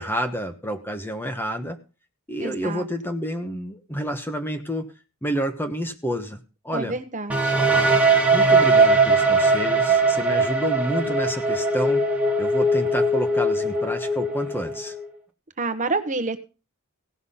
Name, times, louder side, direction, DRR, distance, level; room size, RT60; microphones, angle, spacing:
voice 1, 0.0-1.8 2.3-4.9 5.2-7.0 8.3-12.0 12.4-14.9, equal, 10° left, 6 dB, 1.2 m, -29 dB
voice 2, 2.4-2.9 6.7-7.5 15.6-16.4, right 3 dB, 35° right, 10 dB, 1.1 m, -28 dB
sound 1, 7.3-15.0, right 2 dB, 5° right, 1.5 m, -20 dB
17.0 x 6.0 x 5.6 m, 0.33 s
head